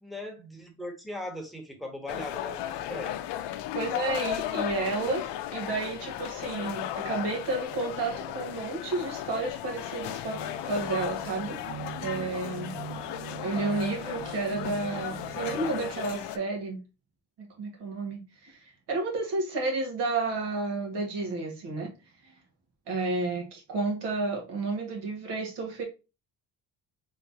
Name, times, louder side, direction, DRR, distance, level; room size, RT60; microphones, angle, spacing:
voice 1, 0.0-2.6 2.9-3.2, left 1 dB, ahead, 1.2 m, -39 dB
sound 1, 2.1-16.4, left 12 dB, 75° left, 0.6 m, -35 dB
voice 2, 3.7-5.2 5.5-11.6 12.0-12.7 13.4-16.8 17.4-21.9 22.9-25.8, right 3 dB, 70° right, 1.7 m, -31 dB
sound 2, 10.3-15.9, right 11 dB, 50° right, 0.5 m, -42 dB
3.7 x 3.7 x 2.8 m
cardioid pair, 95°, 42 cm